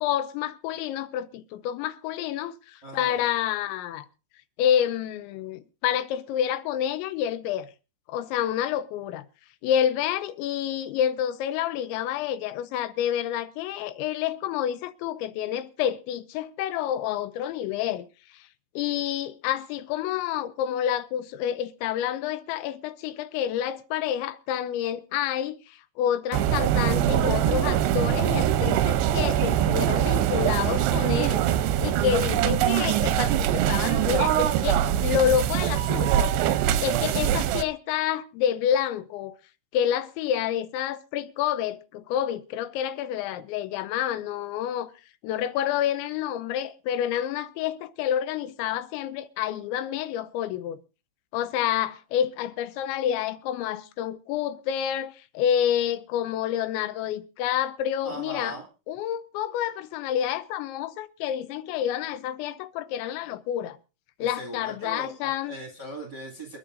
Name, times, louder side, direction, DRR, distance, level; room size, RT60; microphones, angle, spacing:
voice 1, 0.0-4.1 4.6-7.7 8.1-9.2 9.6-18.1 18.3-18.5 18.8-31.4 31.8-36.3 36.8-39.4 39.7-44.9 45.2-50.8 51.3-58.6 58.9-63.8 64.2-65.6, left 10 dB, 80° left, 3.1 m, -28 dB
voice 2, 2.8-3.2 58.0-58.7 64.2-66.6, right 1 dB, 40° right, 1.6 m, -39 dB
sound 1, 26.3-37.6, right 11 dB, 80° right, 2.6 m, -23 dB
27.5 x 10.0 x 2.6 m
omnidirectional pair, 5.3 m